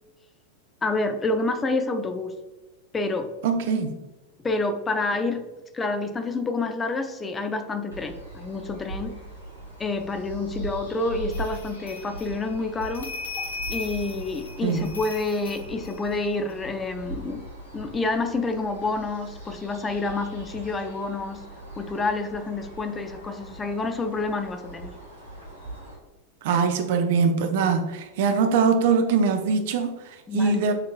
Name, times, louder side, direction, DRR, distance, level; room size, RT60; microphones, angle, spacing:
voice 1, 0.8-2.3 2.9-3.3 4.4-5.5 5.7-9.1 9.8-13.1 13.7-17.4 17.7-21.4 21.8-24.9 30.3-30.6, left 3 dB, 15° left, 7 dB, 0.5 m, -28 dB
voice 2, 3.4-4.0 14.6-14.9 26.4-30.7, right 5 dB, 50° right, 6 dB, 0.5 m, -22 dB
sound 1, 7.9-25.9, right 2 dB, 90° left, 1.5 m, -41 dB
sound 2, 11.3-16.5, left 4 dB, 70° left, 0.7 m, -38 dB
6.6 x 3.0 x 2.4 m, 1.1 s
figure-of-eight pair, 90°, 0 cm